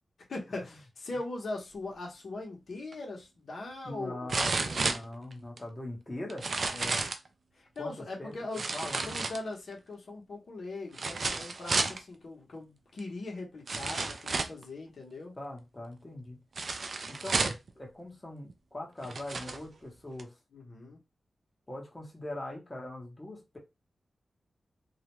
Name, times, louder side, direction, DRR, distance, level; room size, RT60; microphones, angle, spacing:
voice 1, 0.3-4.8 6.7-7.1 7.5-8.6 9.0-15.3 20.5-21.0, left 2 dB, 60° left, 0.8 m, -40 dB
sound 1, 2.9-3.0 4.3-5.6 6.3-7.3 8.5-9.7 10.9-12.0 13.0-13.1 13.7-14.6 16.6-17.7 18.5-18.6 19.0-19.6 20.2-20.3, right 3 dB, 50° right, 0.3 m, -32 dB
voice 2, 3.8-6.5 7.8-8.3 8.7-9.2 15.4-16.4 17.1-20.4 21.7-23.6, left 1 dB, 20° left, 0.9 m, -41 dB
2.4 x 2.1 x 3.0 m
wide cardioid pair, 120°, 0 cm